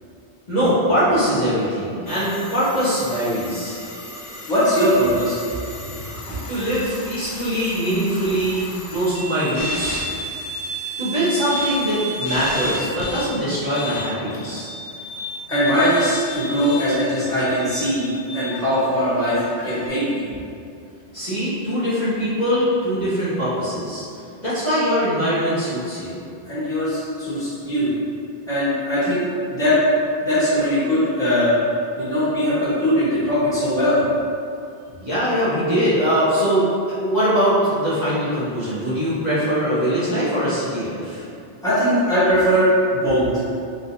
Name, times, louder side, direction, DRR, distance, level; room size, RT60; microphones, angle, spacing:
voice 1, 0.5-3.8 6.5-10.0 11.0-14.7 21.1-24.0 24.4-26.2 35.0-36.6 37.0-41.2, equal, 45° left, -13 dB, 1.2 m, -22 dB
sound 1, 2.1-13.3 13.7-19.9, equal, 60° left, 0.7 m, -33 dB
voice 2, 4.5-5.4 15.5-18.1 18.3-20.2 26.5-27.9 28.5-29.8 30.2-31.6 32.0-34.0 41.6-43.3, equal, 5° left, -13 dB, 1.4 m, -20 dB
3.8 x 3.7 x 2.8 m, 2.5 s
omnidirectional pair, 1.1 m